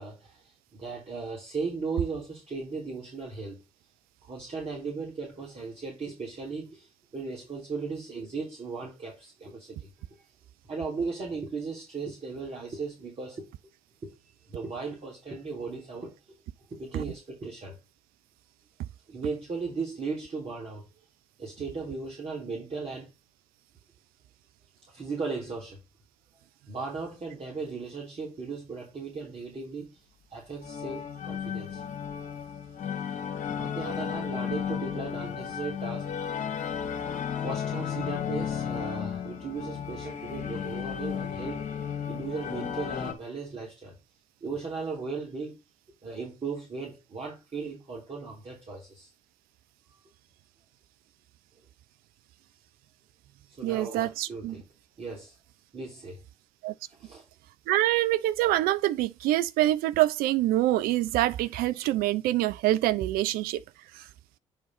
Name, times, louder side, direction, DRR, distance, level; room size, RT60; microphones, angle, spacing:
voice 1, 0.0-3.6 4.3-6.9 7.1-9.9 10.7-13.5 14.0-14.1 14.5-16.4 16.7-17.8 19.1-20.8 21.4-23.1 24.9-25.8 26.7-29.9 30.3-31.8 33.2-33.3 33.5-36.1 37.4-41.7 42.1-44.0 44.4-45.6 46.0-49.1 53.6-54.6 55.0-55.4 55.7-56.2 56.9-57.2, right 4 dB, 40° right, 3.6 m, -37 dB
sound 1, 30.6-43.1, left 8 dB, 55° left, 1.8 m, -34 dB
voice 2, 53.6-54.6 56.6-56.7 57.7-63.6 63.9-64.1, right 15 dB, 65° right, 0.5 m, -25 dB
9.3 x 3.9 x 4.2 m
hypercardioid pair, 50°, 16 cm